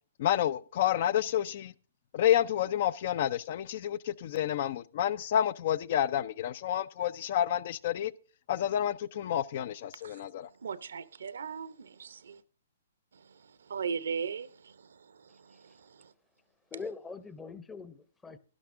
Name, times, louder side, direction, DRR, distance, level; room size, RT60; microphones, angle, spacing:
voice 1, 0.2-1.7 2.1-8.1 8.5-10.5, left 11 dB, 55° left, 0.5 m, -29 dB
voice 2, 10.6-12.4 13.7-14.7, right 6 dB, 80° right, 0.7 m, -36 dB
voice 3, 16.7-18.4, left 4 dB, 10° left, 0.8 m, -42 dB
11.5 x 11.5 x 3.6 m
hypercardioid pair, 135°, 0 cm